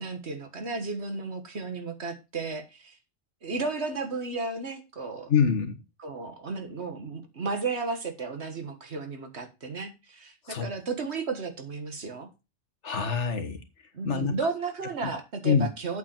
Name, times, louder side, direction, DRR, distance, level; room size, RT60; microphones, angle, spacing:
voice 1, 0.0-3.0 3.4-5.3 6.0-12.3 13.9-16.0, right 4 dB, 70° right, 7 dB, 1.8 m, -34 dB
voice 2, 5.3-5.8 10.4-10.7 12.8-13.6 14.0-14.3 15.0-15.1 15.4-15.7, left 6 dB, 85° left, 6 dB, 1.8 m, -25 dB
8.1 x 7.8 x 4.5 m, 0.27 s
omnidirectional pair, 1.2 m